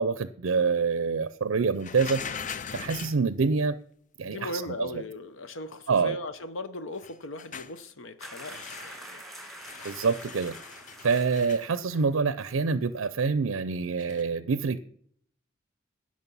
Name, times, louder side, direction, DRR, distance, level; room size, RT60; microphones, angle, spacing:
voice 1, 0.0-2.2 2.7-3.8 4.2-4.5 4.8-4.9 5.9-6.2 9.8-10.5 11.0-14.8, right 5 dB, 70° right, 0.5 m, -26 dB
sound 1, 1.8-3.2 7.0-7.8 8.5-9.1 9.4-11.7 14.0-14.2, left 7 dB, 40° left, 0.5 m, -40 dB
voice 2, 4.2-9.2, left 1 dB, 65° left, 0.8 m, -38 dB
sound 2, 8.2-12.1 12.4-12.6, right 1 dB, ahead, 2.0 m, -46 dB
16.5 x 6.3 x 5.5 m
head